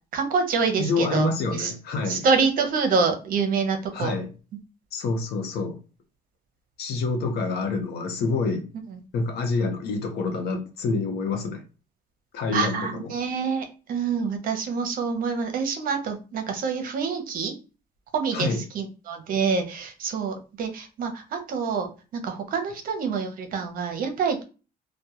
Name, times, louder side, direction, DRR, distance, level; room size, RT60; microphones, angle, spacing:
voice 1, 0.1-1.7 2.1-4.1 8.9-9.0 12.5-17.5 18.1-21.9 22.1-24.4, right 5 dB, 55° right, 0.7 m, -26 dB
voice 2, 0.8-2.3 3.9-4.3 4.9-5.8 6.8-8.7 9.1-11.6 12.3-13.1 18.3-18.6, left 3 dB, 70° left, 0.7 m, -27 dB
2.2 x 2.2 x 2.8 m
cardioid pair, 110°, 17 cm